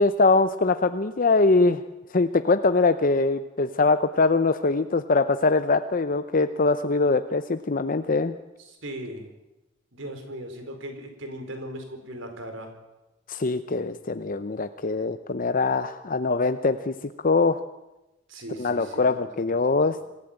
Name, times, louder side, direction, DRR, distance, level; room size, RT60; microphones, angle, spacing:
voice 1, 0.0-1.8 2.1-8.3 13.3-16.9 17.2-17.6 18.6-20.0, left 3 dB, 45° left, 10 dB, 0.7 m, -22 dB
voice 2, 8.8-9.3 9.9-12.7 18.3-19.3 19.7-19.8, right 1 dB, 80° right, 6 dB, 4.5 m, -38 dB
25.5 x 14.5 x 8.9 m, 0.98 s
head